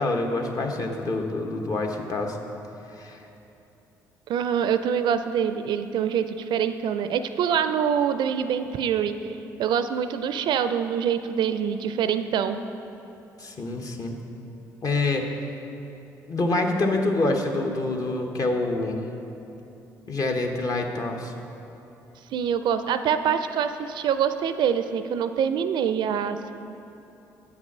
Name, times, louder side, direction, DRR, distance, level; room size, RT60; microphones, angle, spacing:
voice 1, 0.0-2.4 3.0-3.2 13.4-14.2 14.8-15.2 16.3-19.0 20.1-21.3, left 2 dB, 45° left, 3 dB, 1.0 m, -26 dB
voice 2, 4.3-12.6 22.3-26.5, right 8 dB, 60° right, 10 dB, 0.4 m, -25 dB
8.0 x 6.0 x 5.5 m, 2.9 s
hypercardioid pair, 55°, 9 cm